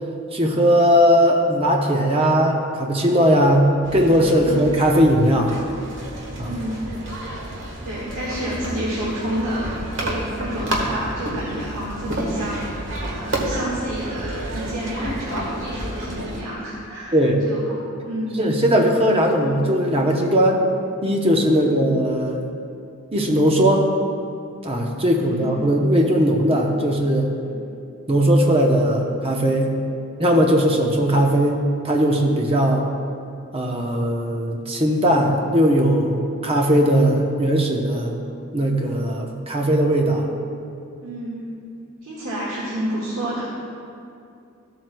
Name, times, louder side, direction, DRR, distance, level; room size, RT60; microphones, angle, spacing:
voice 1, 0.3-5.5 6.4-6.5 17.1-17.4 18.4-20.6 21.0-22.4 23.1-23.9 24.6-27.3 28.1-29.8 30.2-32.9 33.5-38.1 38.5-40.3, equal, 25° right, 0 dB, 0.8 m, -18 dB
sound 1, 3.8-16.4, right 1 dB, 60° right, 1.5 m, -30 dB
voice 2, 6.4-6.8 7.8-17.2 17.4-18.5 21.6-21.9 25.1-25.7 27.5-27.6 41.0-41.5 42.0-43.5, equal, 80° right, -8 dB, 1.8 m, -29 dB
14.5 x 7.7 x 2.2 m, 2.5 s
head